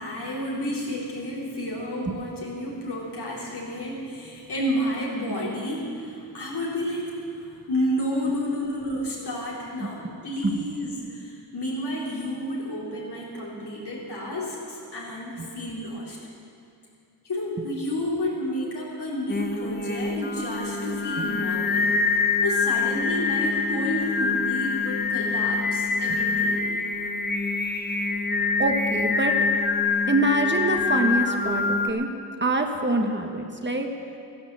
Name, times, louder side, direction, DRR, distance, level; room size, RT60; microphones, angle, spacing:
voice 1, 0.0-16.2 17.2-21.9 22.4-26.6, left 1 dB, 85° left, -5 dB, 4.0 m, -30 dB
Singing, 19.3-31.9, left 4 dB, 25° left, 0.8 m, -25 dB
voice 2, 21.2-21.5 26.1-26.2 28.6-29.3 30.1-32.1 32.4-33.9, right 2 dB, 30° right, 4 dB, 1.4 m, -25 dB
14.0 x 11.0 x 7.8 m, 2.4 s
wide cardioid pair, 85°, 39 cm